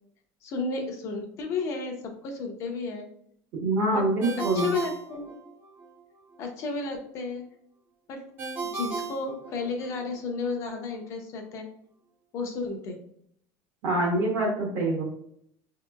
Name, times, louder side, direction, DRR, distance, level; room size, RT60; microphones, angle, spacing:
voice 1, 0.4-3.1 3.9-4.1 4.4-5.3 6.4-7.4 8.1-8.2 8.7-11.7 12.3-13.0, left 4 dB, 40° left, 3 dB, 0.6 m, -33 dB
voice 2, 3.6-4.7 13.8-15.0, right 2 dB, 50° right, -3 dB, 0.9 m, -25 dB
Ringtone, 4.2-5.9 8.4-10.1, right 4 dB, 25° right, 0.5 m, -35 dB
4.7 x 2.8 x 2.2 m, 0.68 s
cardioid pair, 165°, 8 cm